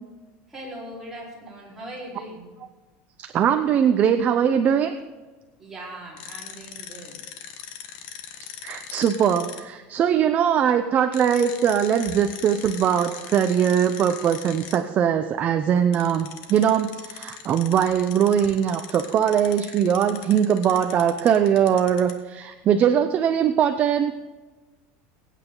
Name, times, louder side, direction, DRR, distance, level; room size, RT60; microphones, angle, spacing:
voice 1, 0.5-2.6 5.6-7.2, right 1 dB, 5° right, -7 dB, 4.2 m, -40 dB
voice 2, 3.3-4.9 8.6-24.1, right 8 dB, 30° right, 7 dB, 0.6 m, -21 dB
sound 1, 6.2-9.6 11.1-14.8 15.9-22.2, left 9 dB, 60° left, 1.4 m, -40 dB
22.0 x 9.1 x 3.9 m, 1.2 s
supercardioid pair, 160°, 6 cm